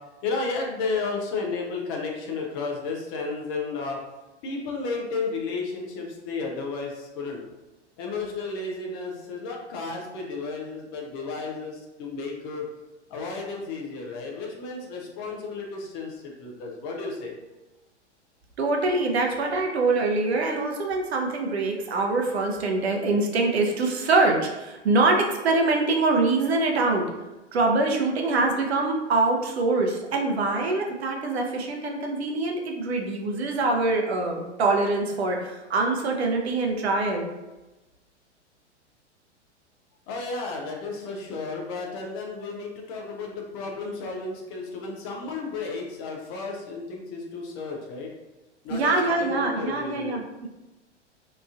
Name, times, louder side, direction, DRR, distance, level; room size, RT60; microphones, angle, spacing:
voice 1, 0.2-4.0 4.4-7.4 8.0-12.6 13.1-17.3 40.1-48.1 48.6-50.2, left 4 dB, 20° left, 0 dB, 0.3 m, -33 dB
voice 2, 18.6-27.1 27.5-37.3 48.7-50.5, right 3 dB, 60° right, 2 dB, 0.6 m, -24 dB
2.9 x 2.3 x 2.4 m, 1.1 s
figure-of-eight pair, 100°, 36 cm